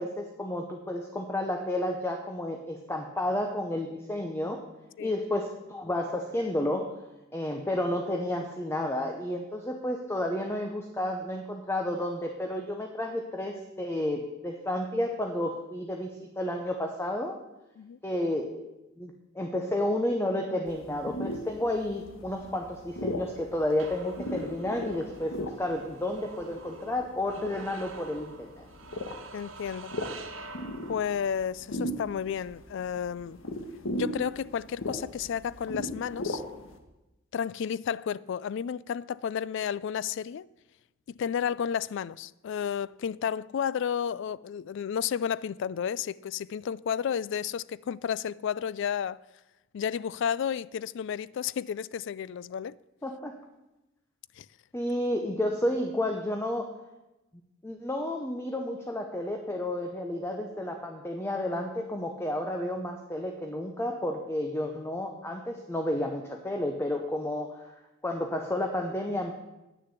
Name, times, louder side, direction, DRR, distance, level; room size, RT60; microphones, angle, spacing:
voice 1, 0.0-4.6 5.0-7.0 7.3-17.4 18.0-18.7 19.0-28.6 53.0-53.4 54.7-56.7 57.6-67.7 68.0-69.3, left 1 dB, 15° left, 0.8 m, -31 dB
sound 1, 20.7-36.8, left 1 dB, 85° left, 1.3 m, -38 dB
sound 2, 22.9-31.4, right 4 dB, 85° right, 1.2 m, -47 dB
voice 2, 29.3-29.9 30.9-33.4 33.9-36.4 37.3-40.5 41.2-49.2 49.7-52.7 54.4-54.5, left 8 dB, 65° left, 0.3 m, -32 dB
9.6 x 6.6 x 8.2 m
head